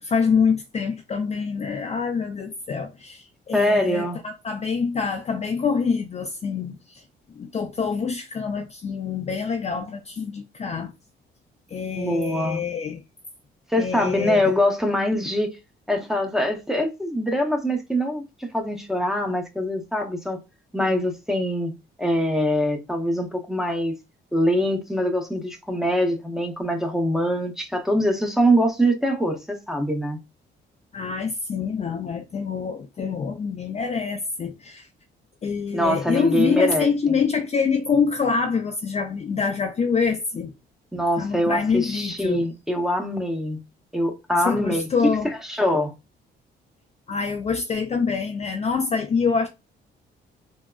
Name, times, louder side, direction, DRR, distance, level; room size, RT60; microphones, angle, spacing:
voice 1, 0.0-7.0 7.4-10.9 11.7-13.0 13.8-14.5 30.9-34.9 35.4-40.5 41.2-42.4 44.4-45.3 47.1-49.5, left 5 dB, 35° left, 0.4 m, -25 dB
voice 2, 3.5-4.2 12.0-12.6 13.7-15.5 15.9-20.4 20.7-21.7 22.0-24.0 24.3-30.2 35.7-36.9 40.9-43.6 43.9-44.8 45.5-45.9, equal, ahead, 0.7 m, -23 dB
3.6 x 2.0 x 2.3 m
cardioid pair, 90°, 20 cm